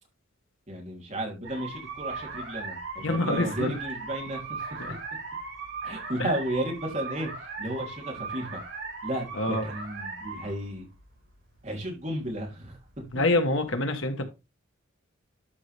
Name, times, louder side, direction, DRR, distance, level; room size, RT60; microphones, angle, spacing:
voice 1, 0.7-4.8 5.8-8.6 9.0-10.8 11.6-12.8, right 1 dB, 35° right, 3.2 m, -33 dB
sound 1, 1.4-13.7, right 4 dB, 60° right, 5.5 m, -38 dB
voice 2, 3.0-3.7 4.8-5.0 6.2-6.3 9.3-9.7 13.1-14.3, left 2 dB, 70° left, 1.4 m, -26 dB
12.5 x 5.6 x 3.4 m
head